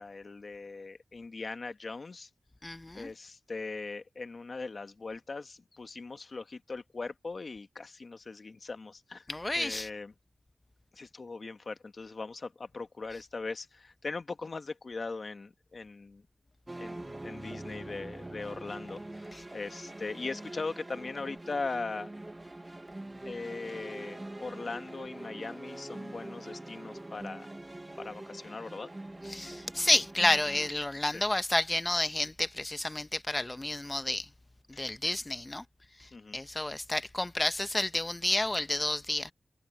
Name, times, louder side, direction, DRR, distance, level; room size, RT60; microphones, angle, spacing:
voice 1, 0.0-2.3 2.9-9.3 9.5-10.1 10.9-16.2 16.8-22.1 23.2-27.5 28.0-28.9 31.1-31.2 34.7-34.8 36.1-36.4, left 3 dB, 60° left, 1.6 m, -40 dB
voice 2, 2.6-3.1 9.3-9.9 29.3-34.3 34.8-35.6 36.3-39.3, left 1 dB, 25° left, 0.9 m, -30 dB
sound 1, 16.7-30.7, right 1 dB, 25° right, 1.4 m, -44 dB
wide cardioid pair, 60°, 0 cm